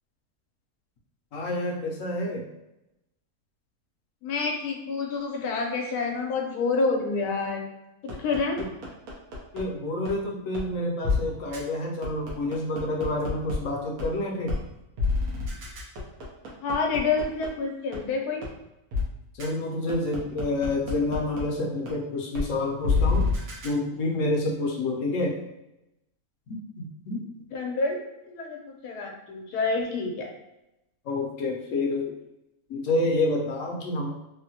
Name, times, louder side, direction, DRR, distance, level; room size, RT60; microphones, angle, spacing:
voice 1, 1.3-2.4 9.5-14.5 19.3-23.3 23.6-25.4 26.5-27.2 31.1-32.2 32.7-34.1, left 2 dB, 65° left, 0 dB, 0.9 m, -28 dB
voice 2, 4.2-7.7 8.0-8.6 16.6-18.4 27.5-30.3, left 4 dB, 85° left, 2 dB, 1.2 m, -28 dB
sound 1, 8.1-9.6 10.1-10.2 10.5-10.6 11.0-11.2 11.5-11.6 12.0-13.5 14.0-14.1 14.5-14.6 15.0-17.5 17.9-18.0 18.4-18.5 18.9-19.0 19.4-19.5 19.9-21.4 21.9-22.0 22.3-22.4 22.8-23.7, left 4 dB, 75° right, 1.2 m, -27 dB
3.5 x 2.1 x 2.7 m, 0.89 s
omnidirectional pair, 1.6 m